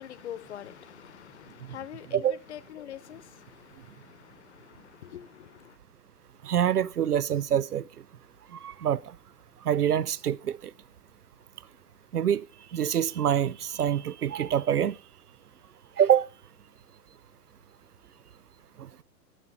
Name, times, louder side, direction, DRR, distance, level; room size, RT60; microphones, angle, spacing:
voice 1, 0.0-5.8, left 10 dB, 45° left, 0.8 m, -44 dB
voice 2, 6.4-7.8 8.5-9.0 9.6-10.7 12.1-12.4 12.7-14.9 16.0-16.3, right 9 dB, 65° right, 0.7 m, -25 dB
11.0 x 10.5 x 4.3 m
figure-of-eight pair, 120°, 49 cm